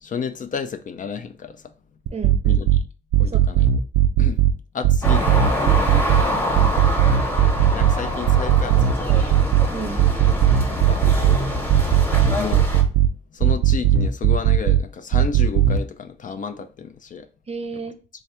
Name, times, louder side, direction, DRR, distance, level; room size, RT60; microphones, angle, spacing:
voice 1, 0.0-1.5 2.4-2.7 3.2-3.7 4.2-4.4 4.7-6.4 7.7-9.4 10.7-11.0 12.4-12.6 13.3-17.3, left 6 dB, 40° left, 0.4 m, -32 dB
sound 1, 2.1-2.8 3.1-4.5 4.8-6.2 6.5-7.9 8.3-9.7 10.0-11.4 11.7-13.1 13.4-14.8 15.1-15.8, right 11 dB, 85° right, 0.5 m, -17 dB
voice 2, 3.2-3.7 6.2-6.7 9.7-10.0 17.5-18.0, right 4 dB, 30° right, 0.6 m, -33 dB
sound 2, 5.0-12.8, left 1 dB, 10° left, 1.0 m, -25 dB
3.3 x 2.4 x 4.2 m
cardioid pair, 90°, 20 cm